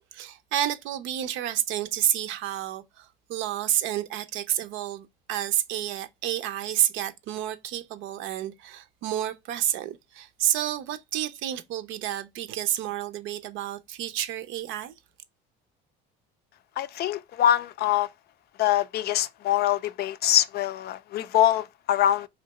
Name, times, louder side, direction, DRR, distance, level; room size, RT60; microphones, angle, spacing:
voice 1, 0.1-14.9, right 12 dB, 70° right, 0.6 m, -30 dB
voice 2, 16.8-18.1 18.6-22.3, left 11 dB, 50° left, 0.4 m, -24 dB
3.2 x 2.8 x 4.0 m
cardioid pair, 120°, 21 cm